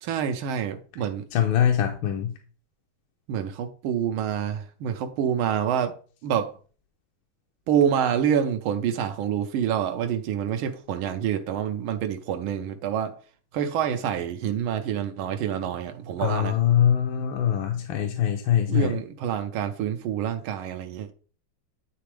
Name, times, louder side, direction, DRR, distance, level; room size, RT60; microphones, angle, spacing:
voice 1, 0.0-1.2 3.3-6.0 6.2-6.5 7.7-13.1 13.5-16.6 18.7-21.1, right 9 dB, 85° right, 1.5 m, -27 dB
voice 2, 1.3-2.3 16.2-18.9, left 10 dB, 80° left, 1.4 m, -23 dB
9.4 x 3.4 x 3.3 m
omnidirectional pair, 2.3 m